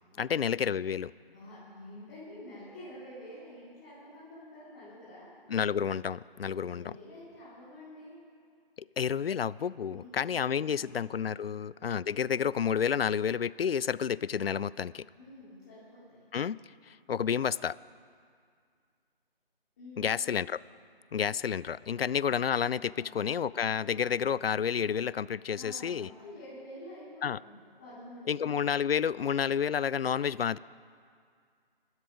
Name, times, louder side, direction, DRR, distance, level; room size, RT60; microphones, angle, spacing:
voice 1, 0.2-1.1 5.5-6.9 9.0-15.0 16.3-16.6 16.9-17.8 20.0-20.6 21.1-26.1 27.2-27.4 28.3-30.6, left 7 dB, 75° left, 21 dB, 0.5 m, -30 dB
voice 2, 1.3-5.3 6.4-8.2 9.9-10.9 15.1-16.2 19.8-20.2 22.8-23.3 25.5-28.6, left 1 dB, 15° left, -11 dB, 3.0 m, -49 dB
21.0 x 12.5 x 5.1 m, 2.2 s
figure-of-eight pair, 170°, 30 cm